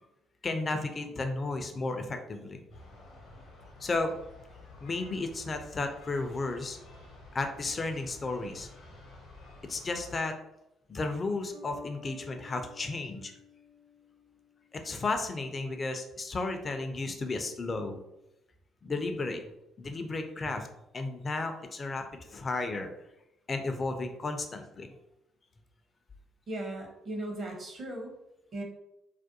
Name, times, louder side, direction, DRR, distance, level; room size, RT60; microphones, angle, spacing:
voice 1, 0.4-2.6 3.8-4.1 4.8-6.8 7.3-8.7 9.6-10.3 10.9-13.3 14.7-18.0 18.8-19.4 19.8-20.7 20.9-22.9 23.5-24.9, left 3 dB, 35° left, 5 dB, 0.4 m, -33 dB
sound 1, 2.7-10.2, left 2 dB, 70° left, 0.7 m, -51 dB
Bass guitar, 11.5-15.0, left 5 dB, 65° right, 1.0 m, -53 dB
voice 2, 26.5-28.1 28.5-28.6, right 1 dB, 45° right, 2 dB, 0.7 m, -37 dB
2.4 x 2.2 x 2.6 m, 0.87 s
hypercardioid pair, 45°, 0 cm